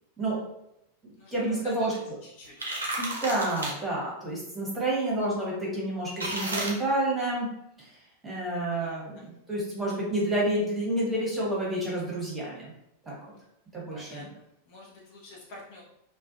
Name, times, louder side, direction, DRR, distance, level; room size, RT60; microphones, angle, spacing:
voice 1, 1.0-1.9 3.0-7.5 7.8-7.9 8.2-12.7 13.1-13.2 13.7-14.3, right 1 dB, 10° right, -6 dB, 1.0 m, -29 dB
voice 2, 1.6-2.7 8.7-9.2 13.9-15.8, left 1 dB, 45° left, -4 dB, 0.7 m, -48 dB
sound 1, 2.4-3.7 6.2-6.7, right 1 dB, 75° right, 0.6 m, -32 dB
2.4 x 2.2 x 2.5 m, 0.81 s
figure-of-eight pair, 90°, 0 cm